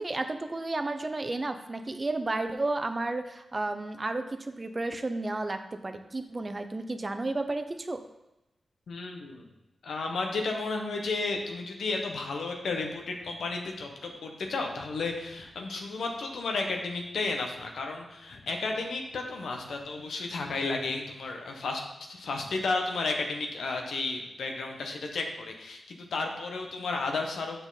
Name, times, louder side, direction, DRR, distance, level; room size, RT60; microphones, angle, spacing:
voice 1, 0.0-8.0, right 2 dB, 35° right, 8 dB, 0.7 m, -32 dB
voice 2, 8.9-9.4 9.8-27.7, left 3 dB, 85° left, 2 dB, 1.1 m, -33 dB
6.9 x 5.9 x 4.1 m, 0.95 s
cardioid pair, 50°, 0 cm